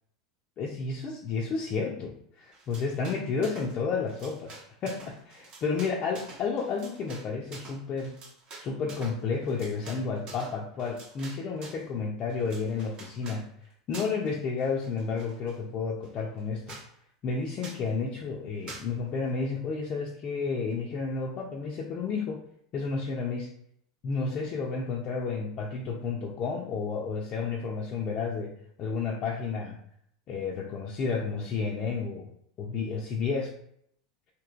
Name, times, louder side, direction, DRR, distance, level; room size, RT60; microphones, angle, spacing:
voice 1, 0.6-4.6 4.8-8.1 8.6-13.5 13.9-16.8 17.2-22.4 22.7-23.5 24.0-28.5 28.8-29.8 30.3-32.3 32.6-33.5, left 4 dB, 40° left, -2 dB, 0.5 m, -31 dB
sound 1, 2.5-3.8 4.0-11.9 12.3-13.4 13.9-14.3 14.6-15.6 16.0-16.1 16.4-16.5 16.7-16.9 17.6-17.9 18.7-18.9, right 3 dB, 40° right, 0.9 m, -47 dB
3.0 x 2.9 x 2.5 m, 0.69 s
hypercardioid pair, 90°, 2 cm